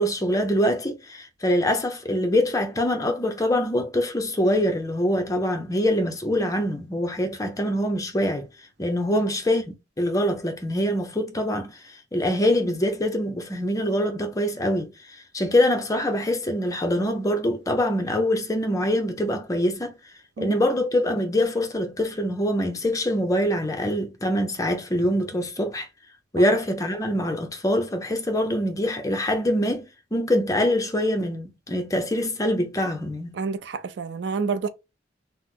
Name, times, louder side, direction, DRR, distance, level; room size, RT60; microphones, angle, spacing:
voice 1, 0.0-8.5 8.8-20.0 20.4-25.9 26.3-33.3, left 1 dB, 20° left, 0.5 m, -24 dB
voice 2, 33.4-34.7, right 5 dB, 65° right, 0.4 m, -28 dB
2.9 x 2.0 x 3.5 m
head